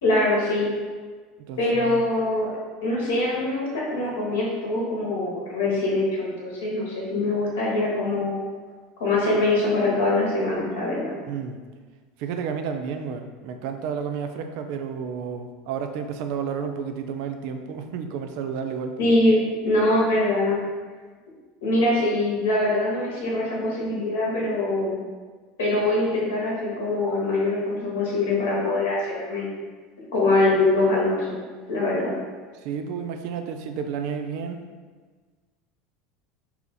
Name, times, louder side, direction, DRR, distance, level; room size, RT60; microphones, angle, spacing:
voice 1, 0.0-0.7 1.6-2.5 2.8-8.5 9.0-11.1 19.0-20.6 21.6-25.0 25.6-29.6 30.1-31.4 31.7-32.1, left 2 dB, 75° left, -5 dB, 1.0 m, -23 dB
voice 2, 1.4-2.0 11.3-11.6 12.2-19.0 32.5-34.6, right 6 dB, 65° right, 6 dB, 0.3 m, -31 dB
2.8 x 2.5 x 3.9 m, 1.5 s
hypercardioid pair, 80°, 0 cm